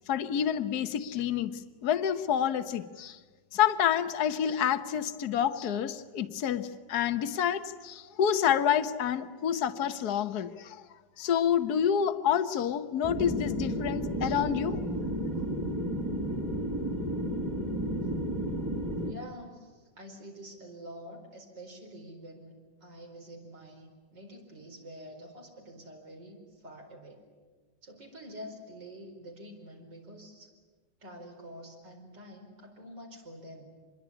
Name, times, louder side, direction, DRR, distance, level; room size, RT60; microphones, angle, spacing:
voice 1, 0.1-3.2 3.5-10.8 11.2-14.8, left 9 dB, 60° left, 10 dB, 1.5 m, -28 dB
sound 1, 13.0-19.1, right 1 dB, 15° right, 2.0 m, -32 dB
voice 2, 19.1-22.5 22.8-27.2 27.8-30.5 31.0-33.8, equal, 70° right, 1 dB, 5.3 m, -47 dB
26.0 x 22.0 x 9.9 m, 1.4 s
omnidirectional pair, 1.9 m